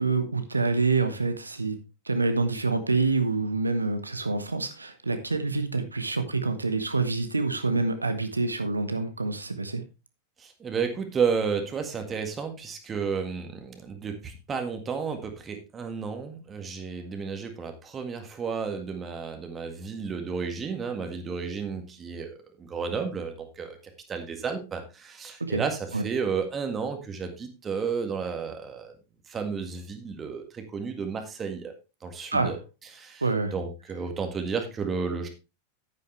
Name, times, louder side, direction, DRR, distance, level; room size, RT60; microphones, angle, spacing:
voice 1, 0.0-1.8 2.1-9.8 25.5-25.6 25.9-26.0 32.3-32.5 33.2-33.5, right 3 dB, 80° right, 1.1 m, -26 dB
voice 2, 10.4-23.8 24.1-28.9 29.3-31.7 32.0-32.6 32.9-33.2 33.5-35.3, right 5 dB, 20° right, 1.9 m, -32 dB
9.7 x 9.6 x 3.3 m
figure-of-eight pair, 90°, 0 cm